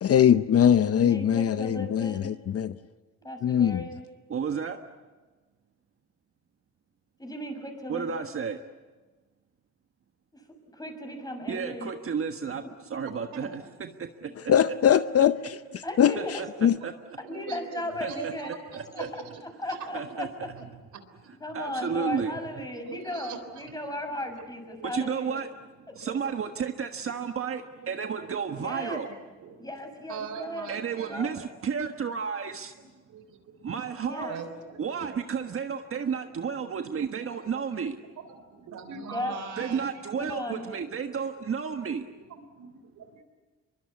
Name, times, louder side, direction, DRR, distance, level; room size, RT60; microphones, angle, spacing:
voice 1, 0.0-2.8 3.4-3.8 14.5-15.6 16.0-16.1 16.6-16.8, left 9 dB, 50° left, 0.8 m, -21 dB
voice 2, 0.8-2.3 3.2-4.1 7.2-8.4 10.3-10.4 10.7-11.9 15.8-16.3 17.2-18.5 18.9-19.2 19.6-20.5 21.4-25.4 26.1-26.2 28.6-29.0 29.6-30.7 31.0-31.4 34.0-34.4 39.1-39.4 40.2-40.7, left 1 dB, 10° left, 6.6 m, -36 dB
voice 3, 4.3-4.8 7.9-8.6 11.5-12.6 12.9-13.6 14.0-14.1 14.9-15.0 16.1-16.5 16.8-16.9 18.0-18.3 18.7-19.1 19.9-20.5 21.5-22.3 24.8-25.5 26.0-29.1 30.7-32.7 33.6-34.4 34.8-38.0 39.6-42.0, right 6 dB, 45° right, 1.4 m, -32 dB
voice 4, 12.9-13.5 13.8-13.9 14.2-14.3 16.8-19.8 21.2-21.3 22.2-22.3 22.8-23.8 27.8-28.1 28.9-29.7 30.1-31.5 32.8-33.4 34.3-35.2 35.9-36.0 36.9-37.9 38.2-39.8 41.8-43.2, right 6 dB, 75° right, 3.9 m, -43 dB
24.0 x 23.5 x 8.5 m
cardioid pair, 90°, 30 cm